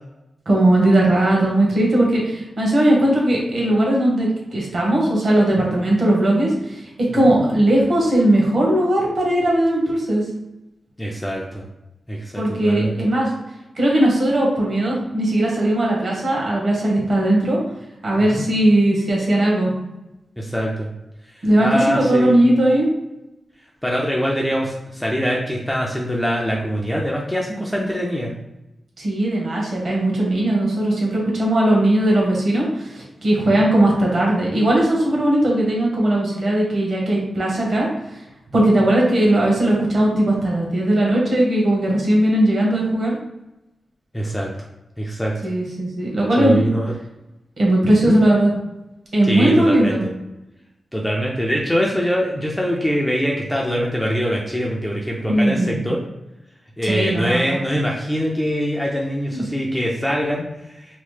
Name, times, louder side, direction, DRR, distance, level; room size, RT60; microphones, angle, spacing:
voice 1, 0.5-6.8 7.1-10.2 12.4-13.3 13.8-17.6 18.0-19.7 21.4-22.9 29.0-37.9 38.5-43.2 45.4-46.6 47.6-48.5 49.1-50.0 55.3-55.8 56.8-57.6 59.3-59.4, right 1 dB, 45° right, -3 dB, 0.9 m, -18 dB
voice 2, 11.0-11.6 12.1-12.9 18.2-18.4 20.4-20.9 21.6-22.4 23.8-28.3 33.6-33.7 44.1-44.5 45.0-45.3 46.4-46.9 48.0-48.2 49.3-49.9 50.9-56.0 56.8-61.0, equal, 5° left, -2 dB, 0.3 m, -23 dB
2.9 x 2.0 x 3.1 m, 0.94 s
wide cardioid pair, 175°, 0 cm